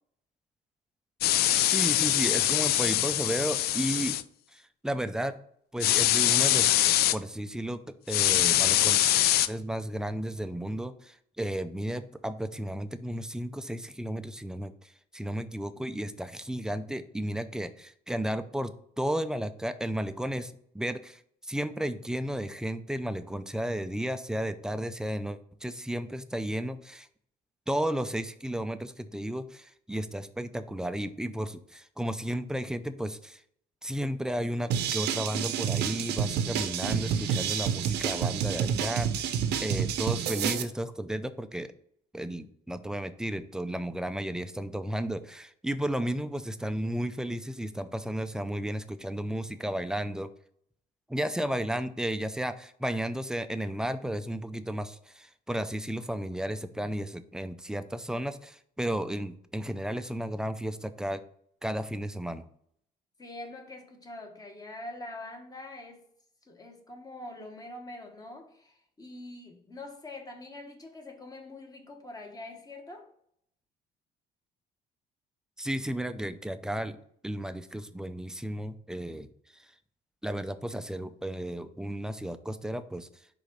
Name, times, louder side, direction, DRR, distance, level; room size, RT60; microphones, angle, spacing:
sound 1, 1.2-4.2 5.8-7.2 8.1-9.5, left 13 dB, 70° left, 0.4 m, -24 dB
voice 1, 1.5-4.2 4.5-5.4 5.7-6.8 7.1-9.0 9.5-18.7 19.0-27.1 27.7-33.4 33.8-39.3 39.6-41.7 42.1-50.3 51.1-61.2 61.6-62.4 75.6-77.0 77.2-79.7 80.2-83.1, right 1 dB, 5° right, 11 dB, 0.4 m, -33 dB
sound 2, 34.7-40.6, right 8 dB, 80° right, 0.7 m, -29 dB
voice 2, 63.2-66.1 66.4-73.1, left 2 dB, 20° left, 3 dB, 1.4 m, -44 dB
5.1 x 3.8 x 5.5 m, 0.66 s
cardioid pair, 110°, 17 cm